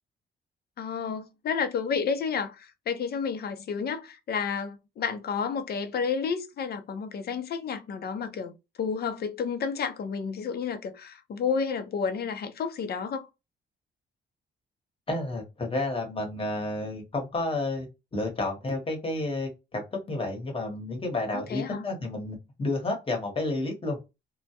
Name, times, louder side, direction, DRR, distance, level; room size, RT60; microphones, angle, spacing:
voice 1, 0.8-8.5 8.8-13.3 21.3-21.8, left 6 dB, 50° left, 0.6 m, -31 dB
voice 2, 15.1-24.0, left 2 dB, 25° left, 1.0 m, -31 dB
2.2 x 2.1 x 2.7 m
cardioid pair, 90°, 20 cm